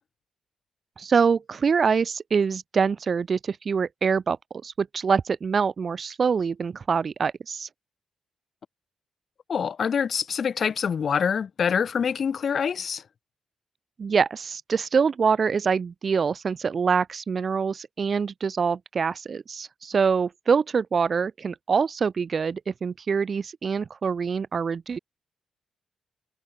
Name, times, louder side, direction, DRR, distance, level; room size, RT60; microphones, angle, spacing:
voice 1, 1.0-7.7 14.0-25.0, right 5 dB, 50° right, 0.5 m, -25 dB
voice 2, 9.5-13.0, left 7 dB, 55° left, 0.8 m, -25 dB
cardioid pair, 85°, 0 cm